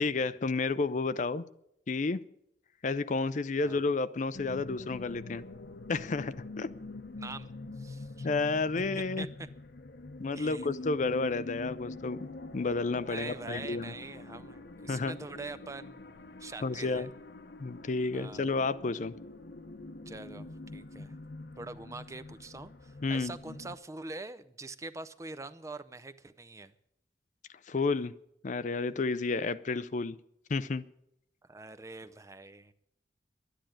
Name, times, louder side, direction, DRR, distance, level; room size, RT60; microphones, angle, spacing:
voice 1, 0.0-1.5 1.9-2.2 2.8-5.4 5.9-6.7 8.2-9.3 10.2-13.9 14.9-15.2 16.6-17.1 17.6-19.1 23.0-23.3 27.7-28.1 28.4-30.2 30.5-30.8, left 3 dB, 45° left, 15 dB, 0.5 m, -31 dB
sound 1, 4.3-23.7, left 2 dB, 65° left, 0.9 m, -45 dB
voice 2, 7.2-8.3 8.9-9.3 10.3-10.7 13.0-17.1 18.1-18.6 20.1-21.1 21.6-26.7 31.5-32.7, right 3 dB, 20° right, 11 dB, 0.5 m, -44 dB
11.5 x 10.0 x 8.9 m, 0.78 s
head